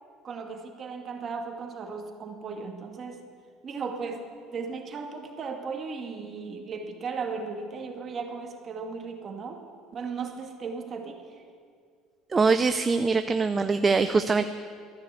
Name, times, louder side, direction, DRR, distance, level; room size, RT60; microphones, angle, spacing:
voice 1, 0.2-3.2 3.6-9.6 9.9-11.4, right 5 dB, 40° right, 3 dB, 2.1 m, -36 dB
voice 2, 12.3-14.5, right 4 dB, 20° right, 9 dB, 0.5 m, -23 dB
13.5 x 10.5 x 8.4 m, 2.1 s
cardioid pair, 115°, 0 cm